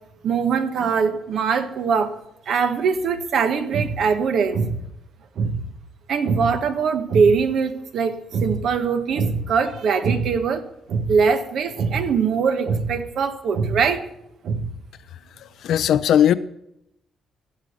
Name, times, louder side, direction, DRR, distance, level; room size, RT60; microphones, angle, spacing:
voice 1, 0.2-2.1 2.5-4.8 5.4-5.6 6.1-14.1 14.4-14.7, right 5 dB, 65° right, 1.1 m, -22 dB
voice 2, 15.1-16.3, left 10 dB, 75° left, 0.5 m, -19 dB
15.5 x 5.2 x 6.5 m
cardioid pair, 90°, 0 cm